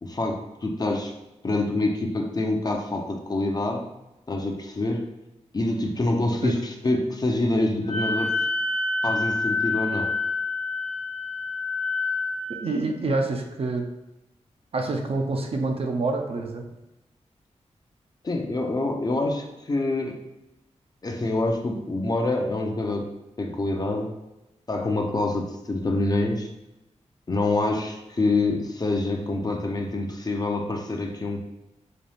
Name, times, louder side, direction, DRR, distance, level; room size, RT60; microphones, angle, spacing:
voice 1, 0.0-1.1 1.4-3.9 4.3-5.1 5.5-8.3 9.0-10.1 18.2-20.1 21.0-24.1 24.7-26.5 27.3-31.4, left 2 dB, 35° left, 2 dB, 0.5 m, -26 dB
Wind instrument woodwind instrument, 7.9-12.6, left 3 dB, 65° left, 0.9 m, -27 dB
voice 2, 12.5-13.9 14.7-16.6, right 3 dB, 55° right, 3 dB, 0.5 m, -27 dB
4.1 x 2.3 x 3.3 m, 0.94 s
wide cardioid pair, 110°, 12 cm